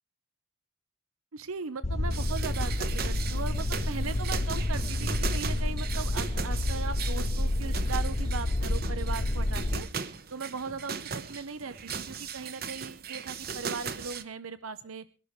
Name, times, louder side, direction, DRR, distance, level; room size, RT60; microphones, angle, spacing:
voice 1, 1.3-9.9 10.3-15.1, right 5 dB, 90° right, 13 dB, 0.8 m, -38 dB
sound 1, 1.8-9.8, left 1 dB, 30° left, 0.7 m, -29 dB
sound 2, 2.1-14.2, right 6 dB, 45° right, 1.0 m, -38 dB
23.0 x 11.5 x 3.3 m, 0.34 s
head